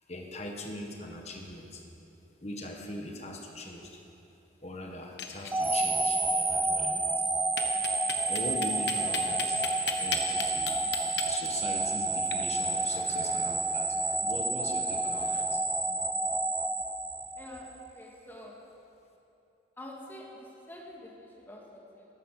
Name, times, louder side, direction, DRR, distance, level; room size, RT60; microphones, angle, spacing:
voice 1, 0.1-1.8 2.4-4.0 4.6-7.1 8.3-9.6 10.0-10.8 11.2-15.6, left 1 dB, 35° left, 1 dB, 1.6 m, -41 dB
sound 1, 5.0-5.9 6.2-6.3 6.6-6.7 7.6-15.4, left 8 dB, 60° left, 1.2 m, -39 dB
sound 2, 5.5-17.7, right 2 dB, 10° right, 0.4 m, -29 dB
voice 2, 17.4-18.6 19.8-22.1, left 1 dB, 10° left, -3 dB, 2.0 m, -47 dB
14.0 x 12.5 x 6.7 m, 2.8 s
head